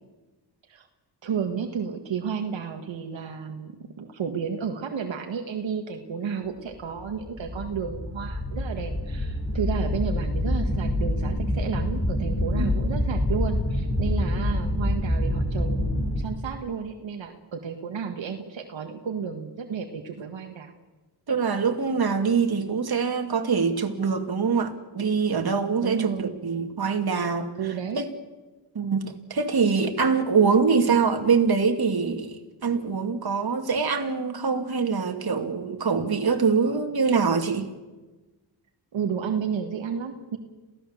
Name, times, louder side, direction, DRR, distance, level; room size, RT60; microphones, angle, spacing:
voice 1, 1.2-20.7 25.8-26.3 27.6-28.0 38.9-40.4, right 6 dB, 80° right, 4 dB, 1.9 m, -32 dB
sound 1, 7.0-16.2, left 1 dB, 30° left, 6.1 m, -26 dB
voice 2, 21.3-27.5 28.0-28.1 28.7-37.7, right 5 dB, 55° right, 4 dB, 2.8 m, -24 dB
27.5 x 16.5 x 7.5 m, 1.2 s
cardioid pair, 65°, 44 cm